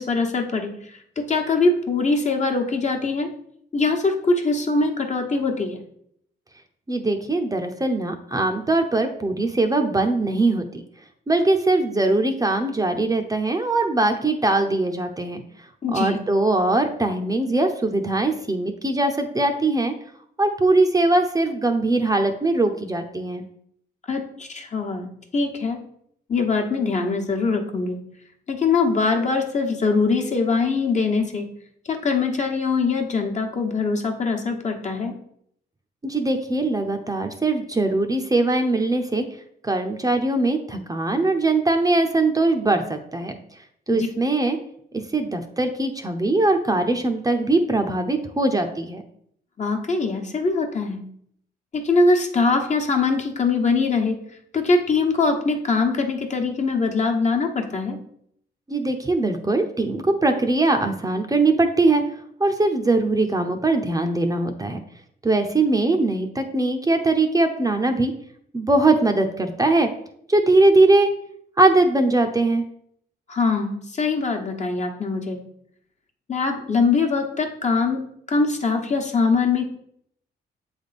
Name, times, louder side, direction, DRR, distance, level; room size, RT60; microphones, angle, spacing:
voice 1, 0.0-3.3 3.7-5.8 15.8-16.2 24.1-25.8 26.3-28.0 28.5-31.5 31.8-35.1 43.9-44.1 49.6-51.0 51.7-54.2 54.5-58.0 73.3-75.4 76.3-78.0 78.3-79.8, left 4 dB, 40° left, 3 dB, 1.2 m, -22 dB
voice 2, 6.9-10.8 11.3-15.4 15.9-19.9 20.4-23.5 36.0-39.2 39.6-43.4 43.9-44.6 44.9-49.0 58.7-62.0 62.4-64.8 65.2-68.1 68.5-69.9 70.3-71.1 71.6-72.6, right 2 dB, 20° right, 5 dB, 0.7 m, -21 dB
7.5 x 3.5 x 4.2 m, 0.68 s
cardioid pair, 70°, 18 cm